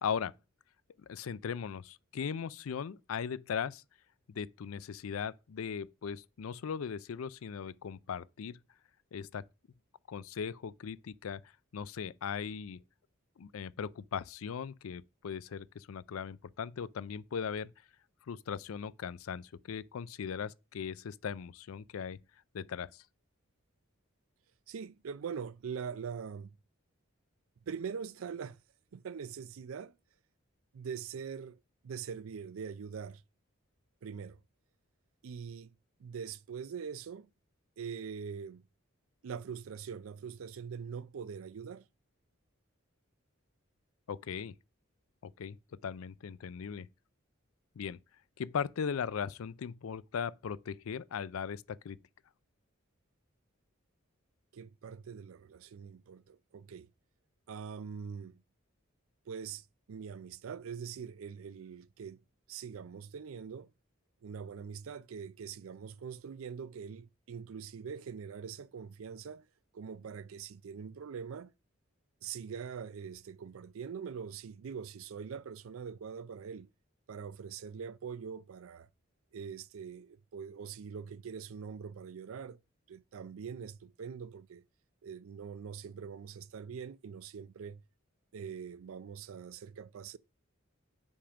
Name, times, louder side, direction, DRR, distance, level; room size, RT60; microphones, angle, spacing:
voice 1, 0.0-0.3 1.0-3.8 4.3-8.6 9.1-9.4 10.1-11.4 11.7-12.8 13.4-17.7 18.3-22.2 22.5-23.0 44.1-44.5 45.2-45.6 45.8-46.9 47.8-48.0 48.4-52.0, left 7 dB, 85° left, 0.4 m, -38 dB
voice 2, 24.7-26.5 27.7-28.6 28.9-29.9 30.7-31.6 31.8-33.2 34.0-34.4 35.2-35.7 36.0-37.3 37.8-38.6 39.2-41.9 54.5-56.9 57.5-58.4 59.3-62.2 62.5-63.7 64.2-69.5 69.7-71.5 72.2-76.7 77.1-78.9 79.3-82.6 82.9-84.6 85.0-87.8 88.3-90.2, right 6 dB, 80° right, 0.4 m, -43 dB
5.4 x 5.0 x 5.8 m
head